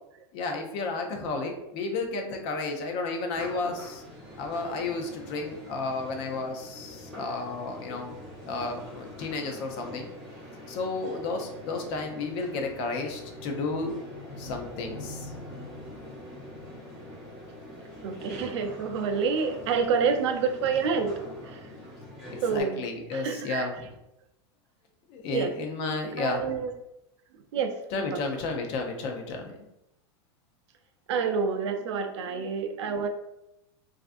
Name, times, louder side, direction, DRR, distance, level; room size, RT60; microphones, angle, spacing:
voice 1, 0.3-4.0 4.4-8.2 8.4-10.1 10.7-13.9 14.4-15.3 22.5-23.7 25.1-26.4 27.9-29.6, left 3 dB, 35° left, 3 dB, 0.4 m, -32 dB
sound 1, 3.3-22.6, left 1 dB, ahead, 0.8 m, -43 dB
voice 2, 18.0-21.7 22.4-22.9 23.1-23.7 25.3-25.5 26.2-26.7 27.5-27.7 28.1-28.2 31.1-33.1, right 5 dB, 80° right, 7 dB, 0.4 m, -28 dB
3.2 x 2.4 x 2.5 m, 0.87 s
supercardioid pair, 175°, 15 cm